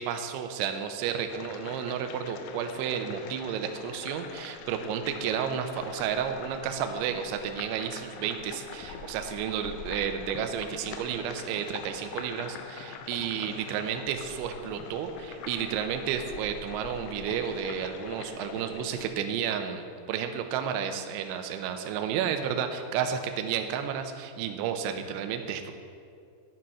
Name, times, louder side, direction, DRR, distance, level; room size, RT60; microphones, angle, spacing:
voice 1, 0.0-25.7, right 8 dB, 80° right, 6 dB, 2.9 m, -32 dB
sound 1, 1.3-19.1, left 6 dB, 80° left, 2.7 m, -43 dB
10.0 x 7.6 x 5.6 m, 2.3 s
omnidirectional pair, 5.6 m